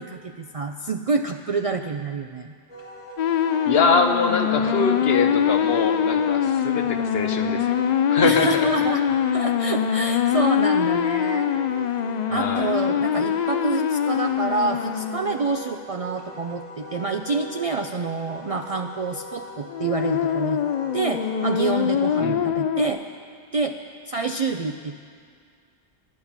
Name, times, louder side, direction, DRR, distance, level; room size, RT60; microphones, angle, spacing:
voice 1, 0.0-2.5 8.2-9.0 9.3-11.5 12.3-20.6 20.9-23.0 23.5-23.8 24.1-25.0, right 4 dB, 55° right, 5 dB, 0.4 m, -27 dB
Wind instrument woodwind instrument, 2.7-22.1, right 1 dB, 35° left, 2.4 m, -40 dB
sound 1, 3.2-15.5 19.7-22.9, left 8 dB, 55° left, 0.5 m, -23 dB
voice 2, 3.6-7.7 8.1-8.7 12.3-12.7 22.2-22.5, left 4 dB, 70° left, 5 dB, 1.1 m, -24 dB
11.5 x 10.5 x 7.1 m, 2.1 s
omnidirectional pair, 1.1 m